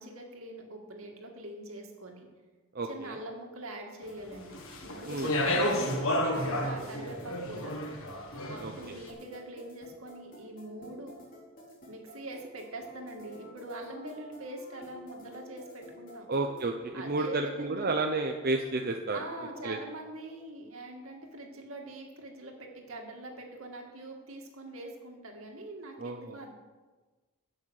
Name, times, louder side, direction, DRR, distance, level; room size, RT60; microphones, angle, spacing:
voice 1, 0.0-2.3 2.8-4.6 4.8-7.8 8.5-11.1 11.9-16.3 16.9-17.9 19.1-26.5, right 1 dB, 70° right, 2 dB, 2.4 m, -43 dB
voice 2, 2.7-3.2 5.1-5.3 8.6-8.7 16.3-19.2 19.6-19.8 26.0-26.4, right 3 dB, 45° right, 4 dB, 0.7 m, -31 dB
sound 1, 4.1-19.7, equal, 40° left, 4.0 m, -50 dB
Speech, 4.5-8.9, left 1 dB, 70° left, 1.8 m, -31 dB
16.0 x 6.4 x 6.5 m, 1.3 s
head